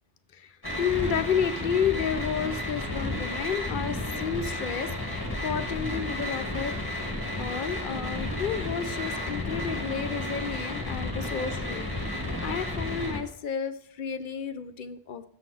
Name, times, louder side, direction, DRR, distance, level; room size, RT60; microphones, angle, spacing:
voice 1, 0.3-6.8 7.4-12.1 12.4-15.2, left 7 dB, 60° left, 10 dB, 0.7 m, -31 dB
sound 1, 0.6-13.2, left 1 dB, 20° left, 1.6 m, -32 dB
6.9 x 5.7 x 6.0 m, 0.75 s
omnidirectional pair, 1.1 m